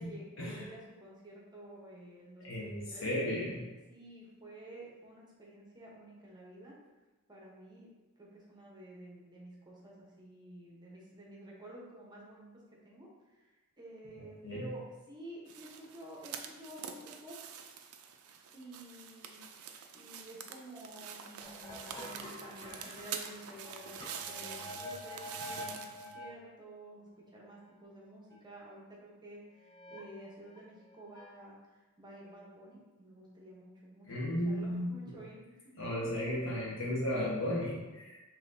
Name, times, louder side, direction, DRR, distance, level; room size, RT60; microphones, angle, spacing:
voice 1, 0.0-3.1 3.9-6.8 7.3-7.9 8.2-17.4 18.5-19.6 19.9-24.0 24.3-34.2 34.4-35.6, right 1 dB, 20° right, -4 dB, 0.8 m, -51 dB
voice 2, 2.4-3.7 14.2-14.7 34.1-35.2 35.8-38.2, equal, 60° left, -4 dB, 1.2 m, -35 dB
sound 1, 15.5-26.1, right 7 dB, 70° right, 0.4 m, -46 dB
sound 2, 21.4-26.3 27.3-27.4 27.6-27.7 28.3-28.4 29.6-30.0 30.5-31.4, left 1 dB, 20° left, 0.5 m, -47 dB
5.6 x 3.1 x 2.6 m, 1.2 s
head